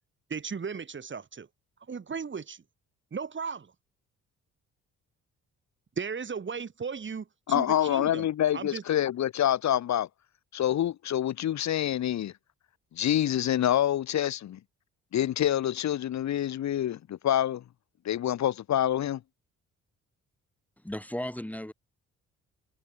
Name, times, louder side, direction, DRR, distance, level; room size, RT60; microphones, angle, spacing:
voice 1, 0.3-1.5 1.9-2.6 3.1-3.7 6.0-8.3 8.5-8.8, right 5 dB, 40° right, 7.4 m, -36 dB
voice 2, 7.5-10.1 10.5-12.3 13.0-14.6 15.1-17.6 18.1-19.2, left 11 dB, 65° left, 1.7 m, -26 dB
voice 3, 20.8-21.7, left 1 dB, 5° left, 3.4 m, -35 dB
cardioid pair, 90°, 30 cm